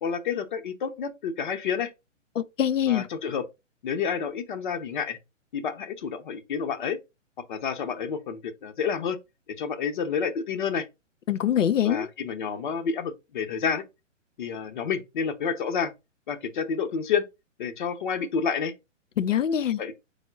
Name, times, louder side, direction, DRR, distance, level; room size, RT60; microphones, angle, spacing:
voice 1, 0.0-1.9 2.9-3.5 3.8-5.2 5.5-7.0 7.5-9.2 9.6-10.8 11.8-13.8 14.4-15.9 16.3-17.3 17.6-18.7 19.8-19.9, left 6 dB, 40° left, 0.7 m, -29 dB
voice 2, 2.4-3.1 11.3-12.1 19.2-19.8, left 10 dB, 75° left, 0.6 m, -24 dB
4.2 x 2.1 x 4.5 m
figure-of-eight pair, 135°, 38 cm